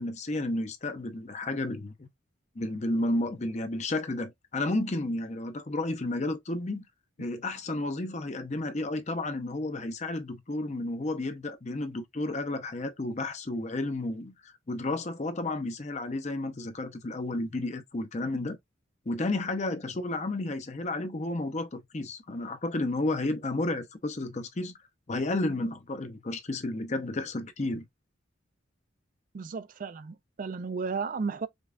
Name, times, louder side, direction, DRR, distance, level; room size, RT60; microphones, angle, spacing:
voice 1, 0.0-2.1 2.6-6.8 7.2-18.6 19.1-24.7 25.1-27.8, left 2 dB, 35° left, 0.6 m, -32 dB
voice 2, 29.3-31.5, right 5 dB, 40° right, 0.3 m, -34 dB
5.1 x 2.3 x 2.4 m
head